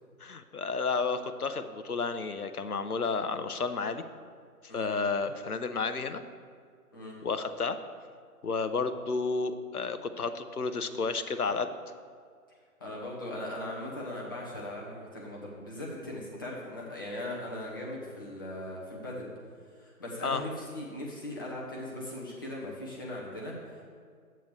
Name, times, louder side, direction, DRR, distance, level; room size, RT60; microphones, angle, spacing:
voice 1, 0.2-4.0 4.7-6.2 7.2-7.8 8.4-11.7 20.2-20.4, left 4 dB, 70° left, 10 dB, 0.8 m, -31 dB
voice 2, 12.8-19.3 19.7-23.8, left 1 dB, 15° left, -4 dB, 0.9 m, -39 dB
11.5 x 9.0 x 3.3 m, 2.1 s
figure-of-eight pair, 145°, 46 cm